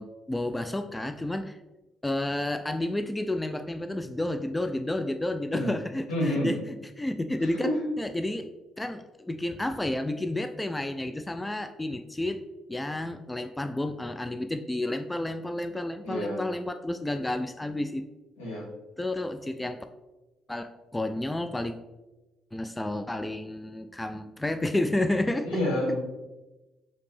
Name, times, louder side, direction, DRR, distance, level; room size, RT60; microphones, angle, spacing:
voice 1, 0.0-1.6 2.0-8.5 8.8-12.4 12.7-18.0 19.0-19.8 20.5-21.8 22.5-25.6, left 1 dB, 15° left, 8 dB, 0.3 m, -31 dB
voice 2, 6.1-6.6 7.6-7.8 16.0-16.4 18.4-18.7 25.5-26.0, left 1 dB, 85° left, -6 dB, 1.4 m, -28 dB
5.0 x 2.9 x 3.2 m, 1.1 s
hypercardioid pair, 50°, 0 cm